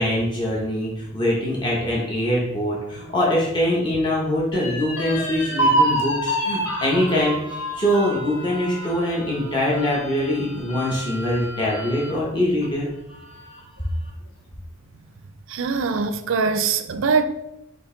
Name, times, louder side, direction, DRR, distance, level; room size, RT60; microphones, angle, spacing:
voice 1, 0.0-12.9, left 1 dB, 20° left, 0.8 m, -23 dB
sound 1, 4.5-12.2 12.6-12.7 13.1-13.8, right 1 dB, 65° left, 1.0 m, -27 dB
voice 2, 15.5-17.2, right 5 dB, 70° right, 0.4 m, -22 dB
5.2 x 2.8 x 3.7 m
head